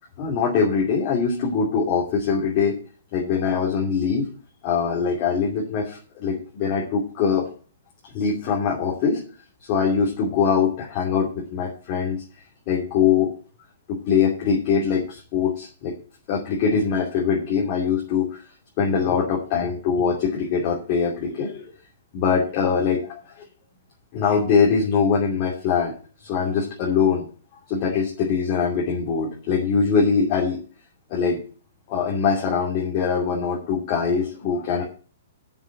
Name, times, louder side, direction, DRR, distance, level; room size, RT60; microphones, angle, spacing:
voice 1, 0.2-2.8 3.1-4.3 4.6-7.5 8.1-9.2 9.7-12.2 12.7-13.3 13.9-15.9 16.3-18.4 18.8-21.7 22.1-23.4 24.1-25.9 26.2-27.2 27.7-30.6 31.1-31.4 31.9-34.8, left 6 dB, 30° left, -3 dB, 2.8 m, -22 dB
7.6 x 7.0 x 7.9 m, 0.39 s
hypercardioid pair, 165°, 0 cm